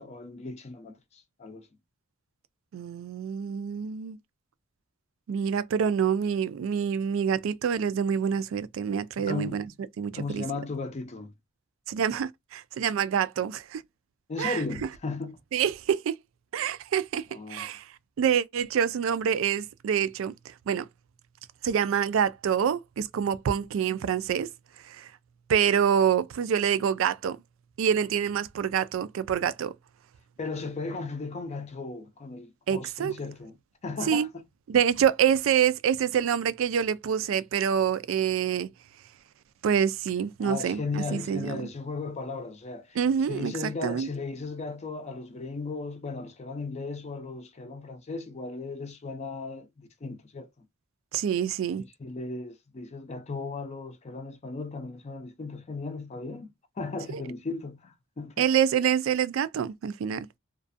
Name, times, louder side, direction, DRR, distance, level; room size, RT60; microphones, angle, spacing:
voice 1, 0.0-1.7 9.2-9.7 10.1-11.3 14.3-15.4 17.3-17.7 30.4-33.6 33.8-34.3 40.4-43.0 43.3-50.5 52.0-58.5, left 3 dB, 35° left, 0.4 m, -36 dB
voice 2, 2.7-4.2 5.3-9.6 10.0-10.4 11.9-13.8 14.4-14.6 15.5-16.1 16.5-17.9 18.2-20.9 21.6-24.5 24.8-25.1 25.5-27.4 27.8-29.7 32.7-33.1 34.1-34.3 34.7-38.7 39.6-41.6 43.0-44.1 51.1-51.8 57.1-57.2 58.4-60.4, right 8 dB, 75° right, 0.3 m, -26 dB
2.4 x 2.2 x 2.5 m
head